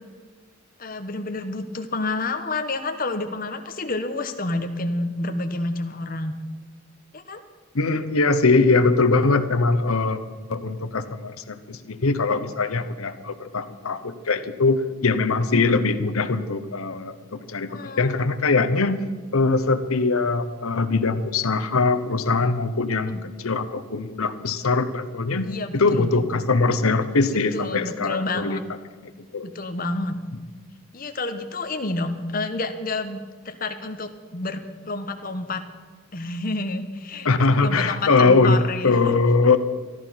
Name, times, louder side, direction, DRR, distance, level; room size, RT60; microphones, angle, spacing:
voice 1, 0.8-6.3 7.1-7.4 17.7-18.1 23.1-23.2 25.4-26.1 27.3-28.6 29.4-30.2 30.9-33.2 33.4-35.6 36.1-37.3 37.6-39.0, left 2 dB, 40° left, 7 dB, 1.1 m, -29 dB
voice 2, 7.7-10.2 10.5-19.0 19.3-25.5 25.7-28.6 29.3-29.5 37.2-39.6, left 3 dB, 80° left, 10 dB, 0.9 m, -22 dB
14.0 x 12.5 x 5.7 m, 1.5 s
head